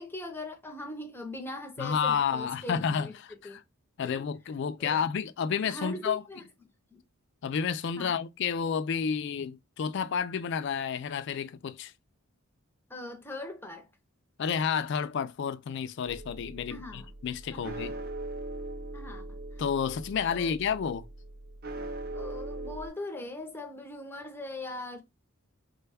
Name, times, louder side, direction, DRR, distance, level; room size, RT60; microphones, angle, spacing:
voice 1, 0.0-3.1 3.4-3.6 4.0-4.1 4.8-5.1 5.6-6.4 6.9-7.0 8.0-8.1 12.9-13.9 16.7-17.1 17.5-18.0 18.9-19.4 20.3-20.6 22.1-25.0, left 2 dB, 10° left, 0.6 m, -41 dB
voice 2, 1.8-3.6 4.0-6.2 7.4-11.9 14.4-18.0 19.6-21.1, left 7 dB, 55° left, 0.3 m, -30 dB
sound 1, 16.0-22.9, right 2 dB, 45° right, 0.4 m, -40 dB
3.3 x 2.2 x 3.3 m
head